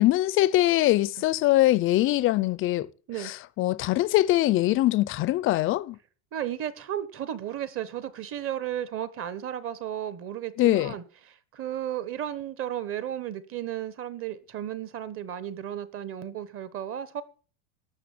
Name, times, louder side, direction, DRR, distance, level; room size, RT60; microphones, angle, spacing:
voice 1, 0.0-2.9 3.2-6.0 10.6-10.9, left 16 dB, 30° left, 0.5 m, -22 dB
voice 2, 6.3-17.2, right 11 dB, 30° right, 1.3 m, -34 dB
12.5 x 6.7 x 8.5 m
supercardioid pair, 145°, 41 cm